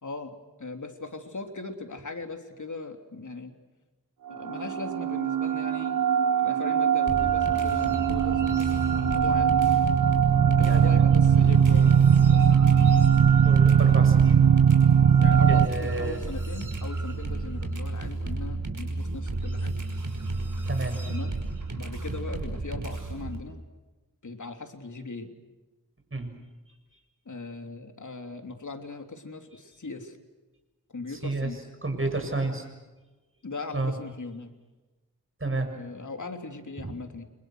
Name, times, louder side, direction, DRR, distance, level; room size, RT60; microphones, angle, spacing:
voice 1, 0.0-3.6 4.3-6.0 6.4-9.7 10.5-12.5 15.2-19.7 21.1-21.4 21.8-23.6 24.2-25.3 27.2-30.2 30.9-31.7 33.4-34.5 35.7-37.2, left 3 dB, 60° left, 5 dB, 3.3 m, -39 dB
sound 1, 4.3-15.7, right 8 dB, 80° right, 0.8 m, -20 dB
sound 2, 7.1-23.4, right 2 dB, 65° right, 5.5 m, -32 dB
voice 2, 13.4-14.4 15.0-16.2 20.7-21.0 26.1-26.3 31.1-31.5 31.8-32.6 33.7-33.9 35.4-35.7 36.8-36.9, right 2 dB, 40° right, 5 dB, 7.2 m, -31 dB
29.5 x 27.0 x 6.4 m, 1.2 s
wide cardioid pair, 55°, 34 cm